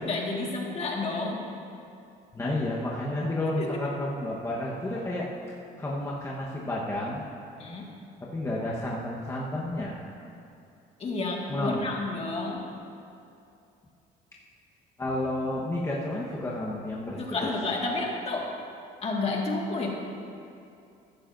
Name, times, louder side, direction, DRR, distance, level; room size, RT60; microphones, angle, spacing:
voice 1, 0.0-1.4 3.6-3.8 7.6-7.9 11.0-12.6 17.2-18.5 19.0-19.9, left 3 dB, 35° left, -1 dB, 1.9 m, -30 dB
voice 2, 2.3-5.3 5.8-7.2 8.2-10.0 11.5-11.9 15.0-17.5, left 1 dB, 15° left, -5 dB, 1.2 m, -31 dB
14.0 x 12.0 x 2.6 m, 2.6 s
cardioid pair, 110°, 17 cm